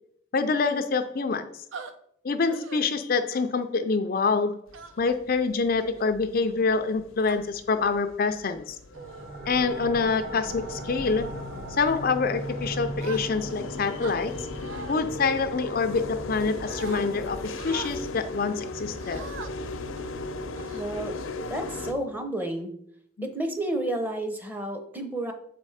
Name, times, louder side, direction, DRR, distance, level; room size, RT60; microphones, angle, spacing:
voice 1, 0.3-1.6 2.2-4.6 5.0-8.8 9.5-11.3 11.8-14.5 14.9-19.2 23.2-23.3, left 4 dB, 45° left, 8 dB, 0.4 m, -26 dB
sound 1, 1.7-1.9 2.5-2.8 3.3-3.6 4.7-5.2 5.8-6.1 6.8-7.4 8.2-8.4 8.9-9.3 9.8-10.0 10.5-10.9 11.4-11.6 13.0-13.6 14.0-14.9 15.6-16.4 16.7-17.0 17.6-18.0 19.0-19.5 20.0-20.1 20.6-21.2, right 4 dB, 75° right, 0.7 m, -43 dB
sound 2, 4.7-21.9, left 3 dB, 80° left, 0.7 m, -38 dB
sound 3, 8.9-20.3, right 1 dB, 50° right, 1.3 m, -40 dB
voice 2, 20.7-21.1 21.5-22.7 23.2-25.3, right 1 dB, 10° right, 6 dB, 0.7 m, -31 dB
7.2 x 4.2 x 4.9 m, 0.69 s
head